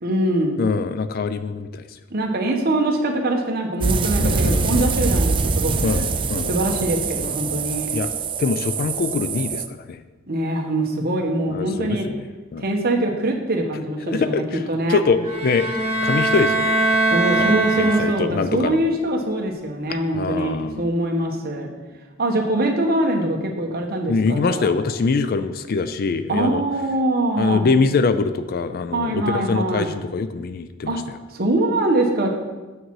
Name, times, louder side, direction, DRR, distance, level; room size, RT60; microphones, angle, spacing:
voice 1, 0.0-0.6 2.1-6.1 6.5-7.9 10.3-12.1 12.6-15.0 17.1-21.7 22.2-24.8 26.3-27.7 28.9-29.9 30.8-31.0 31.3-32.3, right 1 dB, 45° right, 2 dB, 1.1 m, -23 dB
voice 2, 0.6-1.8 4.2-5.2 5.8-6.5 7.2-7.4 7.9-8.1 8.4-10.0 11.5-12.2 12.5-12.6 14.0-14.6 14.9-15.7 16.0-16.8 17.1-18.8 20.1-20.9 24.1-26.6 27.4-31.2, left 4 dB, 45° left, 12 dB, 0.4 m, -23 dB
sound 1, 3.8-9.7, right 4 dB, 25° right, 0.4 m, -24 dB
sound 2, 15.2-18.4, right 2 dB, 15° left, 2.4 m, -21 dB
7.2 x 6.4 x 4.7 m, 1.2 s
head